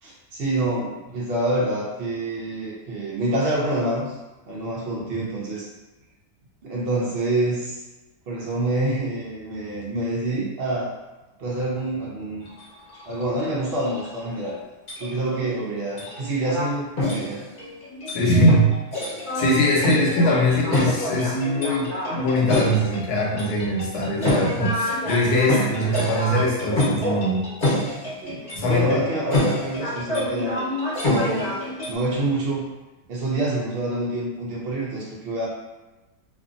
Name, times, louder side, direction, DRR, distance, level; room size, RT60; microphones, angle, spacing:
voice 1, 0.0-4.2 4.5-5.7 6.6-7.8 8.3-10.9 11.4-12.5 13.1-14.6 15.0-17.4 28.2-30.6 31.0-31.5 31.9-32.7 33.1-35.5, right 1 dB, 70° right, -5 dB, 0.6 m, -26 dB
sound 1, 12.4-12.6 12.9-13.2 13.8-14.5 14.9-15.6 16.0-16.7 17.0-31.9, left 1 dB, 40° left, 0.8 m, -27 dB
voice 2, 18.1-18.7 19.3-27.5 28.5-29.0, equal, 90° left, -2 dB, 1.2 m, -21 dB
2.6 x 2.4 x 2.5 m, 1.1 s
omnidirectional pair, 1.6 m